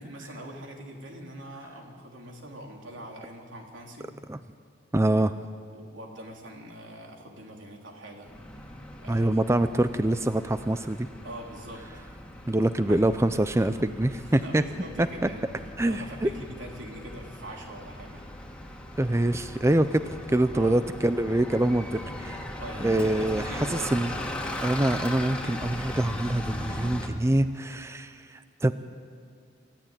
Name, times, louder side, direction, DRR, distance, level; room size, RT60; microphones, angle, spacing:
voice 1, 0.0-4.1 5.1-5.2 5.7-8.3 9.0-9.4 11.2-11.8 12.9-13.2 14.3-15.5 15.8-18.3 20.5-20.8 22.5-23.9, right 1 dB, 85° right, 1 dB, 3.5 m, -43 dB
voice 2, 4.9-5.3 9.1-11.0 12.5-14.6 15.0-15.1 15.8-16.3 19.0-22.4 22.8-23.4 23.7-24.1 24.6-28.7, right 1 dB, 15° right, 11 dB, 0.5 m, -25 dB
Bus, 8.2-27.1, left 1 dB, 5° left, 2.1 m, -38 dB
28.0 x 14.5 x 9.0 m, 2.1 s
head